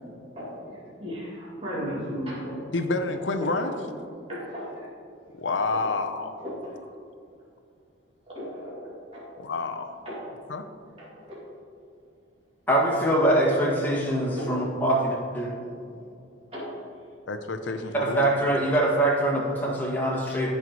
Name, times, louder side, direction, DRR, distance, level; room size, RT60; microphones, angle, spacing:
voice 1, 0.2-2.6 3.1-3.7 4.3-4.9 5.7-5.9 6.4-6.7 8.3-9.2 10.1-10.2 11.0-11.4 14.4-15.0 15.6-15.7 16.5-16.8, equal, 30° right, -8 dB, 2.4 m, -36 dB
voice 2, 2.7-3.7 5.4-6.3 9.4-10.0 10.5-10.7 17.3-18.2 20.3-20.4, left 3 dB, 70° left, 7 dB, 0.6 m, -28 dB
voice 3, 12.7-15.5 18.2-20.5, right 1 dB, 10° left, -5 dB, 1.9 m, -23 dB
16.0 x 5.5 x 3.1 m, 2.4 s
head